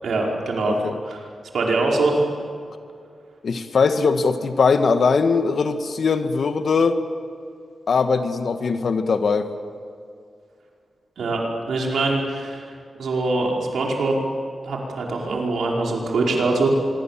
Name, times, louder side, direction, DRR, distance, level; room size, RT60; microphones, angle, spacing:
voice 1, 0.0-0.8 1.0-1.2 1.5-2.2 11.2-12.7 13.0-14.2 14.6-16.7, right 3 dB, 85° right, -1 dB, 5.0 m, -23 dB
voice 2, 0.6-1.0 3.4-7.0 7.9-9.5, left 4 dB, 65° left, 8 dB, 1.7 m, -20 dB
25.5 x 23.0 x 7.5 m, 2.3 s
wide cardioid pair, 115°, 0 cm